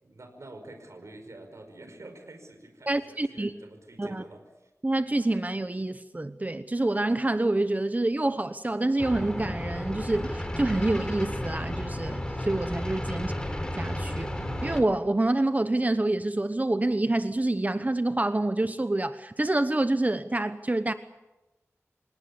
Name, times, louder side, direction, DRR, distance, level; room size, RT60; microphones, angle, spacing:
voice 1, 0.0-4.7, right 2 dB, 70° right, 6 dB, 5.1 m, -47 dB
voice 2, 2.9-3.5 4.0-4.2 4.8-13.3 13.7-14.3 14.6-20.9, right 2 dB, 30° right, 11 dB, 1.0 m, -27 dB
sound 1, 9.0-14.8, left 1 dB, 15° left, 3.8 m, -33 dB
27.5 x 18.0 x 8.4 m, 1.0 s
wide cardioid pair, 70°, 5 cm